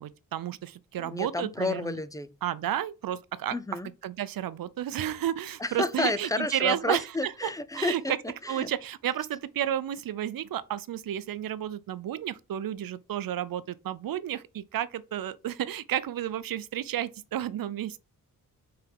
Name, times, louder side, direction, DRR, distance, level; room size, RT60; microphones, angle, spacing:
voice 1, 0.0-2.0 2.4-3.5 4.0-7.3 7.7-8.2 8.5-18.0, right 11 dB, 80° right, 0.7 m, -32 dB
voice 2, 1.0-2.3 3.5-3.9 5.6-8.1 8.4-8.7, left 2 dB, 10° left, 0.5 m, -31 dB
5.8 x 4.4 x 5.4 m
wide cardioid pair, 160°, 34 cm